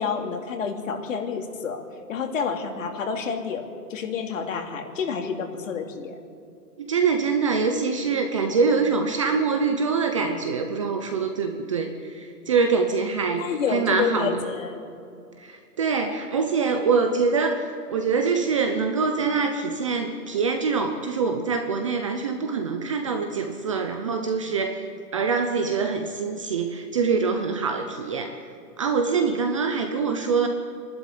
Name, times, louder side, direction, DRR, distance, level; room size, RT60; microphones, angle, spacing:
voice 1, 0.0-1.8 2.1-6.2 13.4-14.8, left 6 dB, 50° left, 4 dB, 2.8 m, -29 dB
voice 2, 6.8-14.3 15.4-24.8 25.1-28.3 28.8-30.5, right 5 dB, 20° right, 5 dB, 0.7 m, -24 dB
24.0 x 12.0 x 9.9 m, 2.4 s
hypercardioid pair, 160°, 48 cm